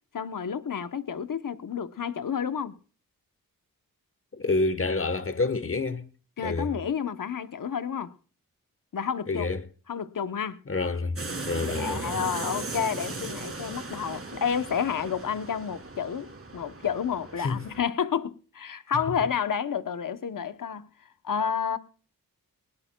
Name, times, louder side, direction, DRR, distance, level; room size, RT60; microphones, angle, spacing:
voice 1, 0.1-2.7 6.4-8.1 8.9-9.5 9.9-10.6 11.6-20.9 21.2-21.8, left 7 dB, 65° left, 0.9 m, -30 dB
voice 2, 4.3-6.1 6.4-6.7 9.3-9.7 10.7-11.2 11.5-12.1 17.4-17.7 19.1-19.2, left 3 dB, 40° left, 1.2 m, -28 dB
sound 1, 11.2-17.8, right 3 dB, 40° right, 3.0 m, -37 dB
19.5 x 17.5 x 2.3 m
cardioid pair, 60°, 35 cm